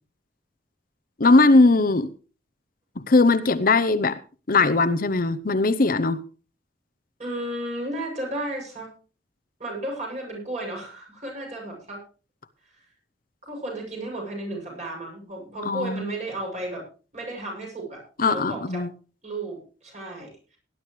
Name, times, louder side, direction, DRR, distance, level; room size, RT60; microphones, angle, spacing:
voice 1, 1.2-2.1 3.0-4.2 4.5-6.2 15.7-16.1 18.2-18.9, left 3 dB, 50° left, 12 dB, 0.8 m, -19 dB
voice 2, 7.2-8.9 9.6-12.0 13.4-16.8 17.1-18.8 19.2-20.6, right 1 dB, 40° right, -1 dB, 7.2 m, -33 dB
18.5 x 11.0 x 3.2 m, 0.36 s
head